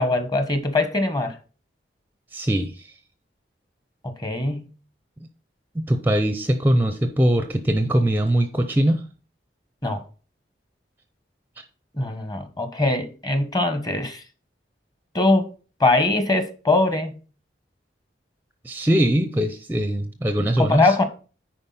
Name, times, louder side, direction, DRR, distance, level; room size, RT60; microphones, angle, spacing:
voice 1, 0.0-1.4 4.0-4.7 9.8-10.0 11.9-14.2 15.1-15.5 15.8-17.1 20.6-21.0, left 2 dB, 20° left, 1.1 m, -22 dB
voice 2, 2.3-2.9 5.7-9.0 18.6-21.0, right 1 dB, 10° right, 0.6 m, -21 dB
9.9 x 4.6 x 5.6 m
head